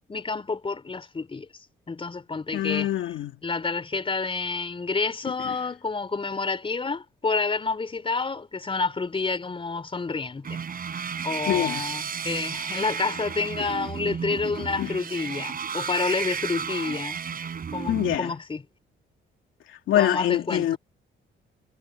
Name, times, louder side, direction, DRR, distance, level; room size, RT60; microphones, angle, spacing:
voice 1, 0.1-1.5 1.9-2.9 3.4-10.6 11.2-17.2 17.7-18.6 19.9-20.8, left 4 dB, 25° left, 4.0 m, -29 dB
voice 2, 2.5-3.3 5.4-5.6 11.5-11.8 14.8-14.9 17.9-18.3 19.7-20.8, left 12 dB, 80° left, 2.4 m, -25 dB
sound 1, 10.4-18.2, right 7 dB, 45° right, 4.9 m, -33 dB
cardioid pair, 90°, 20 cm